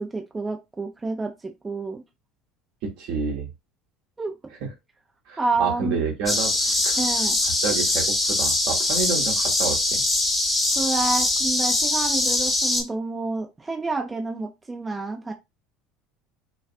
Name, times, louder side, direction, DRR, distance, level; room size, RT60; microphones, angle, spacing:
voice 1, 0.0-2.0 4.2-4.4 5.4-6.0 7.0-7.4 10.7-15.3, right 3 dB, 20° right, 0.5 m, -29 dB
voice 2, 2.8-3.5 4.6-4.7 5.3-7.0 7.4-10.0, right 5 dB, 65° right, 0.9 m, -29 dB
sound 1, 6.3-12.8, left 1 dB, 15° left, 0.9 m, -22 dB
2.4 x 2.3 x 2.4 m
hypercardioid pair, 70°, 0 cm